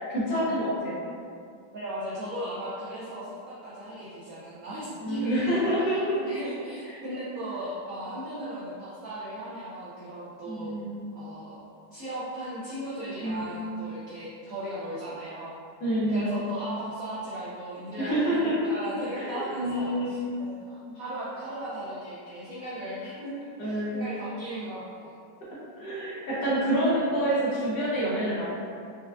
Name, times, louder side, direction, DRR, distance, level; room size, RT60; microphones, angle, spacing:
voice 1, 0.1-1.0 5.0-6.2 6.9-7.0 10.5-11.1 13.2-13.6 15.8-16.4 18.0-18.7 19.2-20.3 23.6-24.1 25.8-28.4, right 1 dB, 70° left, -8 dB, 1.4 m, -27 dB
voice 2, 1.7-10.7 11.1-11.6 11.9-15.6 16.1-23.3 23.6-25.2, right 1 dB, 80° right, -8 dB, 0.7 m, -37 dB
4.7 x 2.2 x 2.3 m, 2.4 s
omnidirectional pair, 2.1 m